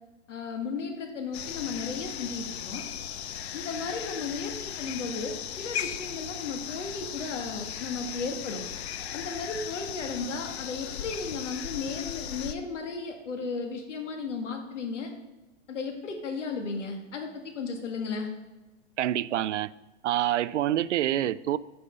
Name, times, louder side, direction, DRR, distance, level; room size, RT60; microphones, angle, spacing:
voice 1, 0.3-2.8 3.5-8.6 9.1-15.1 15.7-18.3, left 4 dB, 85° left, 5 dB, 1.9 m, -35 dB
sound 1, 1.3-12.6, left 9 dB, 60° left, 0.7 m, -37 dB
voice 2, 19.0-19.7 20.0-21.6, right 12 dB, 75° right, 19 dB, 0.5 m, -26 dB
8.7 x 5.1 x 5.3 m, 1.1 s
hypercardioid pair, 160°, 36 cm